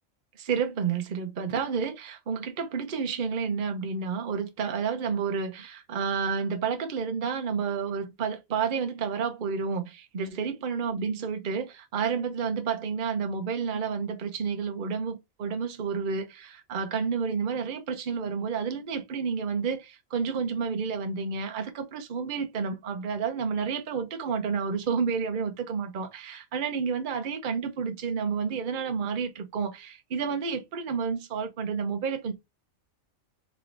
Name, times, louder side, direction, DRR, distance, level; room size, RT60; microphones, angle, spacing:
voice 1, 0.4-32.3, right 6 dB, 45° right, 0.8 m, -30 dB
3.9 x 3.7 x 3.3 m
omnidirectional pair, 1.4 m